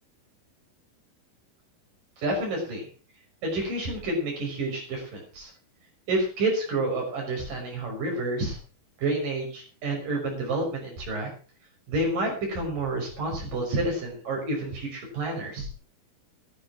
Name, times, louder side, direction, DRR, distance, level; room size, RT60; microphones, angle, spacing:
voice 1, 2.2-2.9 3.4-5.5 6.1-8.6 9.0-11.3 11.9-15.7, right 2 dB, 55° right, 0 dB, 7.4 m, -29 dB
11.5 x 11.5 x 6.0 m, 0.38 s
omnidirectional pair, 4.7 m